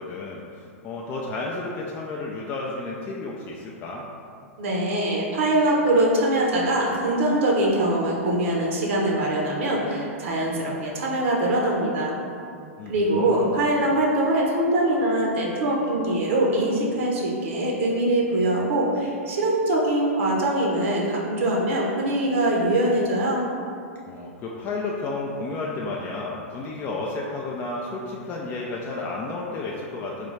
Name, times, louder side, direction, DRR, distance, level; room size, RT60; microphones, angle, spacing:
voice 1, 0.0-4.0 12.8-13.7 24.1-30.3, left 3 dB, 25° left, -3 dB, 0.3 m, -32 dB
voice 2, 4.6-12.2 12.9-23.4, right 1 dB, 60° right, -3 dB, 0.7 m, -23 dB
3.9 x 2.3 x 3.2 m, 2.4 s
hypercardioid pair, 105°, 8 cm